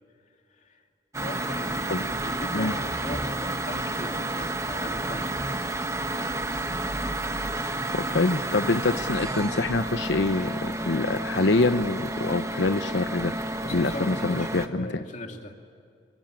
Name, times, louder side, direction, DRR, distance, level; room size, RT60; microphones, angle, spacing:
voice 1, 0.5-0.8 1.2-5.4 13.6-15.5, left 2 dB, 40° left, 3 dB, 2.7 m, -39 dB
sound 1, 1.1-14.7, right 2 dB, 15° right, 1.2 m, -30 dB
voice 2, 7.9-13.4 13.7-14.9, left 3 dB, 80° left, 9 dB, 0.8 m, -25 dB
28.0 x 24.0 x 8.9 m, 2.5 s
head